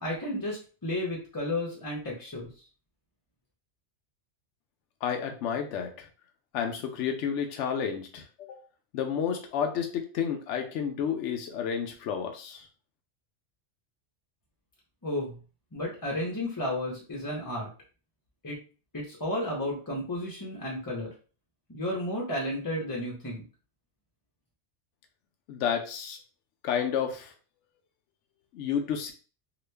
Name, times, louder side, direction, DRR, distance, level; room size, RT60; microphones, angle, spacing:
voice 1, 0.0-2.5 15.0-15.3 15.7-17.7 18.4-18.6 18.9-21.1 21.7-23.4, left 1 dB, 25° left, -3 dB, 0.6 m, -32 dB
voice 2, 5.0-6.1 6.5-8.6 8.9-12.7 25.5-26.2 26.6-27.3 28.5-29.1, left 7 dB, 80° left, 3 dB, 0.9 m, -31 dB
2.9 x 2.3 x 3.3 m, 0.37 s
omnidirectional pair, 1.2 m